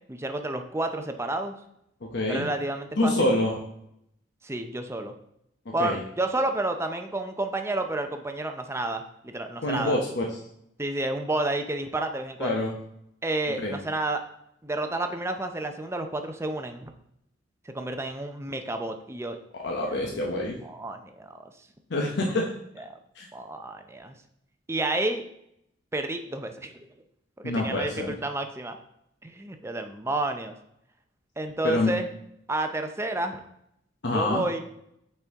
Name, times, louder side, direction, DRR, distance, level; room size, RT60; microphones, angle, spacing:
voice 1, 0.1-1.5 2.3-3.1 4.4-5.2 5.7-10.0 10.8-12.6 13.2-14.2 14.6-16.9 17.7-19.4 19.8-20.0 20.6-21.5 22.9-23.0 23.3-24.1 24.7-25.2 25.9-26.8 27.4-28.8 29.2-30.6 31.4-32.1 32.5-33.4 34.1-34.6, right 2 dB, 15° right, 6 dB, 0.5 m, -30 dB
voice 2, 2.0-2.5 3.0-3.6 5.8-6.0 9.6-10.3 12.4-12.7 13.6-13.8 19.6-20.6 21.9-22.5 23.2-23.3 27.4-28.1 31.6-31.9 34.0-34.4, left 1 dB, 65° left, -1 dB, 0.9 m, -26 dB
8.6 x 4.4 x 3.6 m, 0.76 s
head